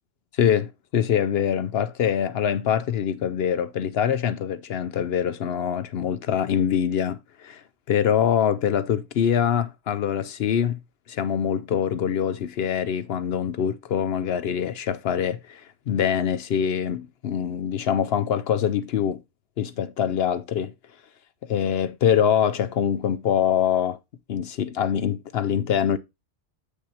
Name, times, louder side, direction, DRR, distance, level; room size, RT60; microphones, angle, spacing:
voice 1, 0.4-10.8 11.1-19.2 19.6-20.7 21.4-24.0 24.3-26.0, left 8 dB, 65° left, 0.8 m, -24 dB
7.9 x 6.6 x 2.8 m
omnidirectional pair, 1.3 m